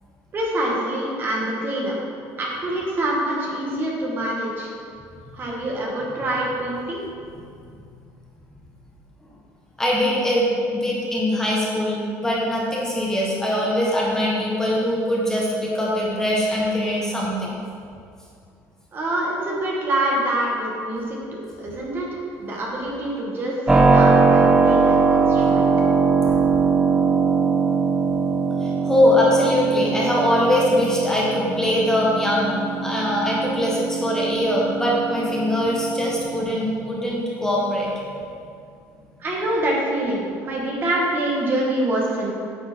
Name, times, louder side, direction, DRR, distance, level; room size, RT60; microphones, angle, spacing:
voice 1, 0.3-2.0 2.4-4.7 5.3-7.0 18.9-25.7 39.2-42.3, right 1 dB, 35° right, -3 dB, 1.8 m, -25 dB
voice 2, 9.8-10.5 10.7-17.6 26.2-26.5 28.6-37.9, left 1 dB, 10° left, -5 dB, 1.4 m, -22 dB
Keyboard (musical), 23.7-36.4, right 4 dB, 10° right, 0.7 m, -21 dB
9.1 x 6.4 x 4.6 m, 2.4 s
cardioid pair, 135°, 6 cm